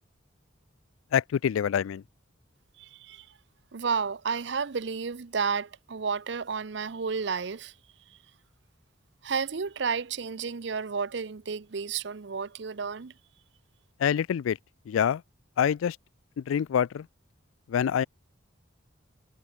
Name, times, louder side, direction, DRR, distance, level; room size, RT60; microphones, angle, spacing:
voice 1, 1.1-2.0 14.0-14.6 14.9-15.2 15.6-16.0 16.4-17.1 17.7-18.1, left 8 dB, 90° left, 0.3 m, -26 dB
voice 2, 2.8-3.3 3.7-7.7 9.2-13.1, right 5 dB, 60° right, 0.6 m, -31 dB
head